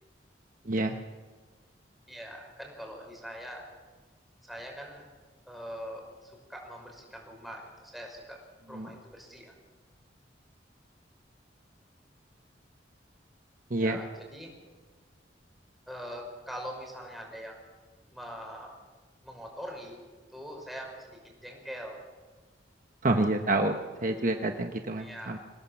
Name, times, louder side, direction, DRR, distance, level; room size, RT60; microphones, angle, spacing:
voice 1, 0.7-1.0 8.7-8.9 13.7-14.0 23.0-23.8 24.0-25.4, right 2 dB, 45° right, 5 dB, 1.1 m, -27 dB
voice 2, 2.1-3.7 4.4-5.0 5.5-8.4 8.7-9.5 13.7-14.5 15.9-17.6 18.1-18.7 19.2-20.0 20.3-22.0 25.0-25.4, equal, ahead, 0 dB, 5.6 m, -43 dB
25.5 x 17.5 x 7.2 m, 1.4 s
head